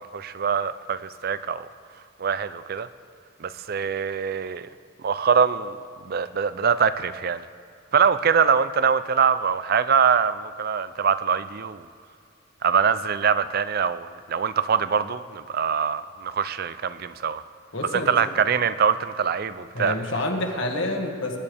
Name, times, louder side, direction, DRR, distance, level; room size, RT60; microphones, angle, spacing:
voice 1, 0.0-1.7 2.2-2.9 3.4-4.7 5.0-5.8 6.0-7.5 7.9-11.8 12.6-17.4 17.9-19.9, right 6 dB, 45° right, 0.4 m, -23 dB
voice 2, 17.7-18.1 19.7-21.4, left 1 dB, 65° left, 1.7 m, -28 dB
22.0 x 10.5 x 3.5 m
head